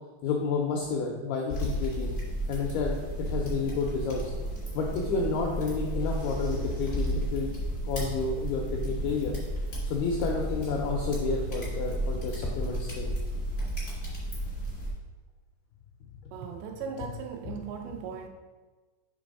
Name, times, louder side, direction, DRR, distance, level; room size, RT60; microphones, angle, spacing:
voice 1, 0.2-2.1 2.5-4.3 4.7-7.5 7.8-9.3 9.9-13.1 17.5-17.6, left 4 dB, 85° left, 0 dB, 2.2 m, -30 dB
sound 1, 1.5-14.9, right 1 dB, 60° left, 0.8 m, -33 dB
voice 2, 16.3-18.3, right 6 dB, 80° right, 3 dB, 2.6 m, -38 dB
6.8 x 3.5 x 5.2 m, 1.3 s
omnidirectional pair, 5.2 m